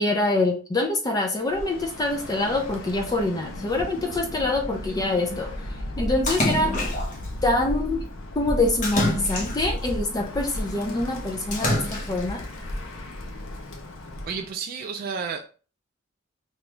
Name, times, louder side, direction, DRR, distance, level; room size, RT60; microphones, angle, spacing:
voice 1, 0.0-5.5 6.0-6.9 7.4-8.0 8.4-12.5, left 2 dB, 20° left, 2 dB, 0.4 m, -25 dB
Bird, 1.4-14.5, left 1 dB, 75° left, 0.6 m, -34 dB
Splash splatter, 6.3-7.3 8.8-9.9 11.5-12.3, left 2 dB, 40° left, 0.8 m, -26 dB
voice 2, 14.3-15.5, right 6 dB, 45° right, 4 dB, 0.3 m, -31 dB
3.0 x 2.3 x 3.2 m, 0.37 s
head